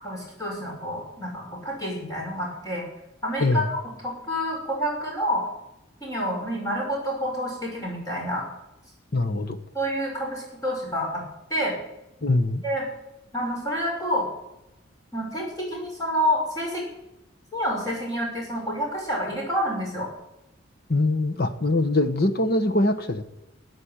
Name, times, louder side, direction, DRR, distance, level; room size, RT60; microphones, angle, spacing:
voice 1, 0.0-2.8 3.2-5.5 6.0-8.4 9.7-11.2 11.5-11.8 12.6-12.8 13.3-14.3 15.1-16.8 17.5-20.1, equal, 20° left, -3 dB, 5.6 m, -28 dB
voice 2, 9.1-9.6 12.2-12.6 20.9-23.2, left 2 dB, 50° left, 9 dB, 1.2 m, -23 dB
13.0 x 9.7 x 8.8 m, 0.90 s
head